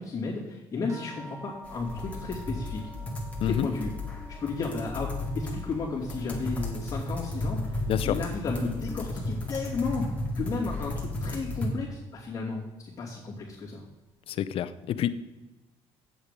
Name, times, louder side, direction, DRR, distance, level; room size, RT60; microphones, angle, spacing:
voice 1, 0.0-2.8 3.4-3.9 4.4-10.1 10.3-13.8, left 4 dB, 30° left, -8 dB, 2.6 m, -33 dB
sound 1, 0.9-9.7 10.0-10.9 11.7-11.8 12.2-12.3, equal, 25° right, 1.6 m, -51 dB
sound 2, 1.6-11.7, left 2 dB, 10° left, 2.2 m, -34 dB
voice 2, 14.3-15.1, left 10 dB, 55° left, 13 dB, 0.6 m, -28 dB
8.4 x 7.9 x 5.2 m, 1.1 s
cardioid pair, 125°, 11 cm